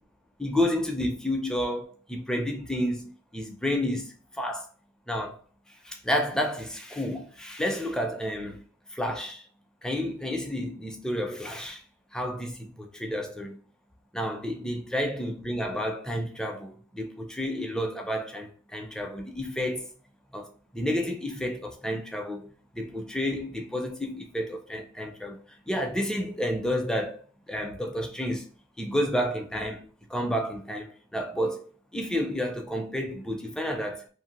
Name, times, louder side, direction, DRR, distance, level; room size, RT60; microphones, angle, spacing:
voice 1, 0.4-4.7 5.1-5.4 5.8-8.6 8.9-9.4 9.8-11.8 12.1-13.6 14.1-19.9 20.3-22.5 22.7-25.4 25.7-28.5 28.8-29.8 30.1-34.1, equal, 5° left, 0.4 m, -30 dB
2.7 x 2.6 x 2.8 m
head